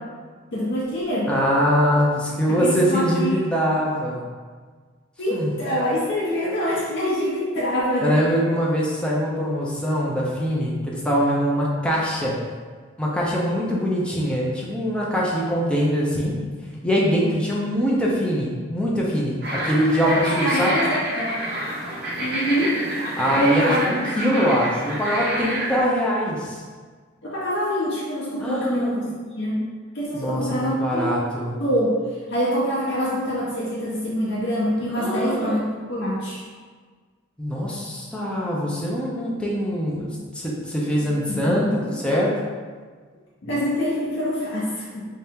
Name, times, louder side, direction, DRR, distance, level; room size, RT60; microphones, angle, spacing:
voice 1, 0.5-1.3 2.5-3.4 5.2-8.4 20.0-21.4 22.2-22.8 23.3-24.1 27.2-29.1 29.4-29.6 29.9-31.1 31.6-32.0 32.3-36.4 41.3-41.8 43.4-45.1, equal, 55° left, -7 dB, 0.6 m, -25 dB
voice 2, 1.3-4.2 5.3-5.5 8.0-12.3 13.0-16.3 16.8-20.8 23.2-26.6 28.4-29.1 30.1-31.6 34.9-35.6 37.4-42.3, equal, 5° left, -5 dB, 0.5 m, -23 dB
sound 1, 19.4-25.8, right 1 dB, 50° right, 0.7 m, -28 dB
3.2 x 2.8 x 3.5 m, 1.5 s
head